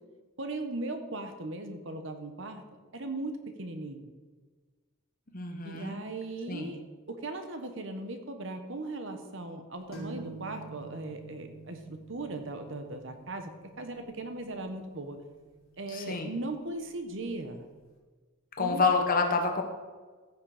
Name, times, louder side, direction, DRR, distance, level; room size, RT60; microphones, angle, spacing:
voice 1, 0.4-2.6 2.9-4.1 5.6-6.8 7.1-15.2 15.8-17.6 18.6-18.9, right 2 dB, 60° right, 6 dB, 1.2 m, -38 dB
voice 2, 5.3-6.0 6.5-6.7 15.9-16.3 18.6-19.6, left 4 dB, 40° left, 3 dB, 1.3 m, -28 dB
sound 1, 9.9-17.4, right 3 dB, 70° left, 3.4 m, -49 dB
15.5 x 6.5 x 5.0 m, 1.4 s
head